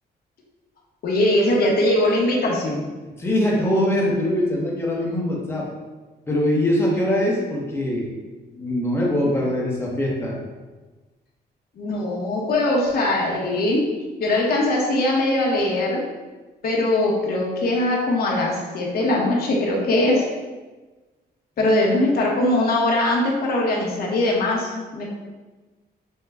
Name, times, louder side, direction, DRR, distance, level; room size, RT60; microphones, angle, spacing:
voice 1, 1.0-2.9 11.8-13.8 14.2-16.0 16.6-20.2 21.6-25.1, left 1 dB, 60° left, -2 dB, 1.0 m, -21 dB
voice 2, 3.2-5.7 6.3-8.1 8.5-10.4, left 1 dB, 15° left, -4 dB, 0.8 m, -22 dB
5.4 x 2.2 x 3.4 m, 1.2 s
wide cardioid pair, 175°, 18 cm